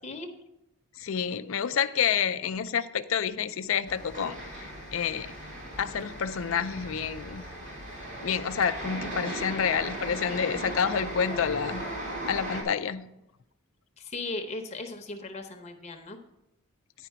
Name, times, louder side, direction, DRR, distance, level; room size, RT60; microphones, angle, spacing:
voice 1, 1.0-5.3 5.8-7.4 8.2-11.8 12.3-13.1, left 7 dB, 70° left, 0.4 m, -29 dB
sound 1, 3.9-12.6, right 1 dB, 55° right, 2.6 m, -37 dB
voice 2, 14.0-16.2, left 2 dB, 30° left, 0.7 m, -37 dB
10.0 x 5.0 x 5.7 m
head